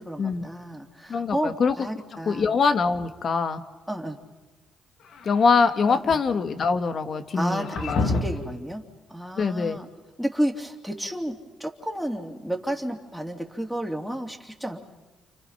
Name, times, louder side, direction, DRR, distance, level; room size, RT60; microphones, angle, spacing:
voice 1, 0.0-2.5 3.9-4.2 5.9-6.2 7.3-8.8 9.1-9.9 10.2-14.8, equal, ahead, 3 dB, 3.2 m, -31 dB
voice 2, 1.1-1.8 2.3-3.6 5.2-8.1 9.4-9.8, left 5 dB, 50° left, 8 dB, 1.9 m, -23 dB
sound 1, 5.0-5.9 7.3-8.6, left 3 dB, 75° left, 2.1 m, -30 dB
30.0 x 29.5 x 5.9 m, 1.2 s
cardioid pair, 90°, 0 cm